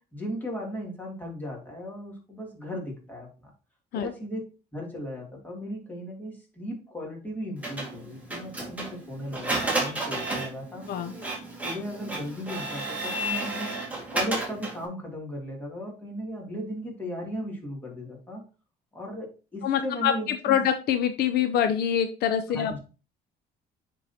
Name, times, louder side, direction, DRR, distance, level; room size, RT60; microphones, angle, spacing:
voice 1, 0.1-3.5 3.9-4.4 4.7-10.9 11.6-13.8 14.1-18.4 18.9-20.6 22.5-22.8, equal, 10° left, -1 dB, 2.6 m, -36 dB
Printer, 7.6-14.9, right 2 dB, 10° right, 2.0 m, -32 dB
voice 2, 19.6-22.8, left 9 dB, 70° left, 8 dB, 0.6 m, -25 dB
9.7 x 3.9 x 2.8 m, 0.34 s
cardioid pair, 110°, 17 cm